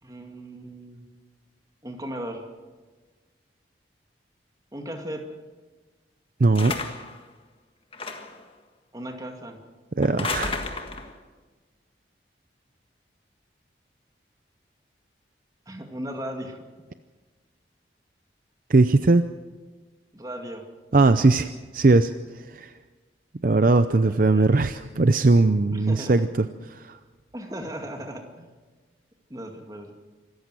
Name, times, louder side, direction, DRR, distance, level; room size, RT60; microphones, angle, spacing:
voice 1, 0.0-1.0 1.8-2.4 4.7-5.3 8.9-9.6 15.7-16.6 20.1-20.6 23.9-24.5 25.7-26.3 27.3-28.5 29.3-29.9, equal, 20° right, 4 dB, 2.2 m, -37 dB
voice 2, 6.4-6.7 10.0-10.5 18.7-19.2 20.9-22.1 22.5-22.7 23.4-26.3 26.7-27.0, right 3 dB, 45° right, 11 dB, 0.5 m, -19 dB
sound 1, 6.5-7.2 7.9-8.4 10.0-11.1, left 3 dB, 30° left, 1.6 m, -32 dB
25.5 x 14.5 x 7.7 m, 1.3 s
head